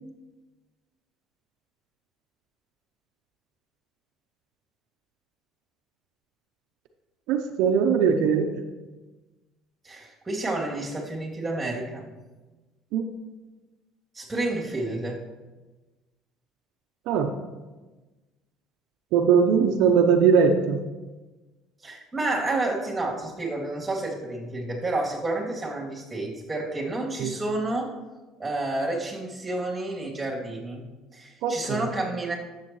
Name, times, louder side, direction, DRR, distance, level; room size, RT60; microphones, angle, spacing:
voice 1, 7.3-8.5 12.9-13.1 17.1-17.3 19.1-20.8 27.2-27.3 31.4-31.8, right 6 dB, 75° right, 4 dB, 0.7 m, -20 dB
voice 2, 9.8-12.1 14.1-15.3 21.8-27.9 28.4-30.9 31.1-32.3, right 2 dB, 15° right, -2 dB, 2.8 m, -30 dB
12.0 x 7.4 x 3.1 m, 1.2 s
supercardioid pair, 90°, 0 cm